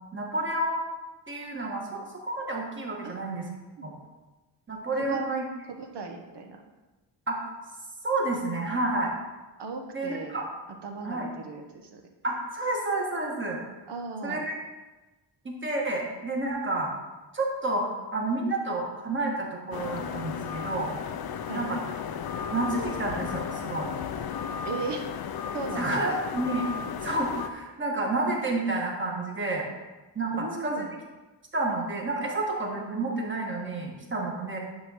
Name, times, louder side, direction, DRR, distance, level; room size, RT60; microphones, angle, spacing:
voice 1, 0.1-0.8 1.3-3.4 3.8-3.9 4.7-5.5 7.3-7.4 8.0-9.1 9.9-10.4 11.0-11.3 12.2-13.6 14.2-14.6 15.4-16.9 17.3-20.9 21.5-21.8 22.5-23.9 25.7-26.7 27.0-29.7 30.1-30.9 31.5-34.6, right 2 dB, 25° right, -1 dB, 1.5 m, -30 dB
voice 2, 3.0-3.3 3.8-3.9 5.0-5.2 5.7-6.6 9.6-10.4 10.8-12.0 13.9-14.5 21.5-21.6 24.7-25.0 25.5-26.2 30.3-30.9, right 4 dB, 70° right, 3 dB, 1.3 m, -37 dB
sound 1, 19.7-27.5, left 7 dB, 60° left, 0.6 m, -34 dB
10.0 x 3.9 x 6.3 m, 1.2 s
wide cardioid pair, 175°, 43 cm